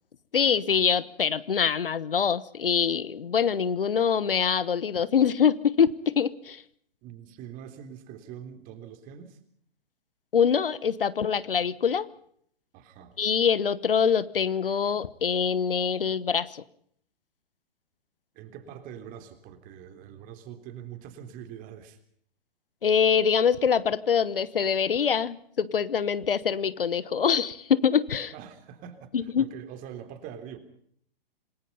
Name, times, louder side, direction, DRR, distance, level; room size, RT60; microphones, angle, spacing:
voice 1, 0.3-6.6 10.3-12.1 13.2-16.6 22.8-28.3 29.1-29.4, left 7 dB, 70° left, 18 dB, 1.2 m, -24 dB
voice 2, 7.0-9.4 12.7-13.2 18.3-22.0 28.3-30.6, right 9 dB, 30° right, 8 dB, 3.4 m, -43 dB
27.0 x 20.0 x 5.6 m, 0.66 s
figure-of-eight pair, 115°, 29 cm